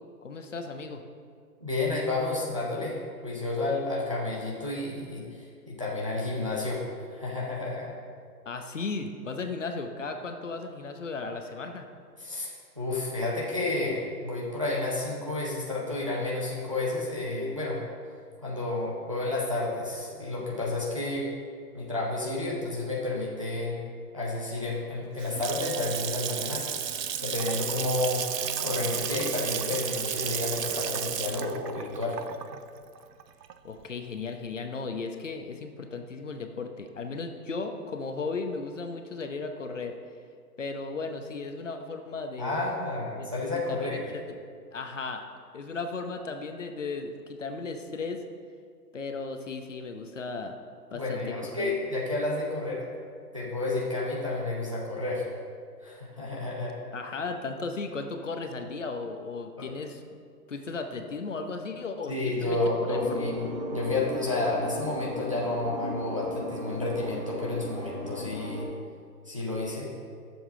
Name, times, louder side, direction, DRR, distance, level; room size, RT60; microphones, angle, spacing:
voice 1, 0.2-1.0 8.5-11.9 33.6-39.9 40.6-42.6 43.2-43.3 43.7-44.4 44.7-45.2 45.5-48.2 48.9-50.6 50.9-51.7 56.9-60.0 60.5-62.6 62.9-63.2, left 4 dB, 50° left, 5 dB, 0.8 m, -35 dB
voice 2, 1.6-6.8 7.1-8.0 12.2-17.8 18.4-21.3 21.7-23.8 24.1-28.3 28.6-32.2 42.4-44.0 50.9-52.9 53.3-55.3 55.8-56.8 59.6-59.7 62.1-63.5 63.7-68.7 69.3-69.9, left 2 dB, 20° right, -4 dB, 0.7 m, -31 dB
Water tap faucet / Sink (filling or washing) / Splash splatter, 25.0-33.8, right 9 dB, 90° right, 0.7 m, -33 dB
sound 1, 62.9-68.6, left 1 dB, 70° right, 2.7 m, -36 dB
12.0 x 7.2 x 3.7 m, 2.2 s
hypercardioid pair, 175°, 48 cm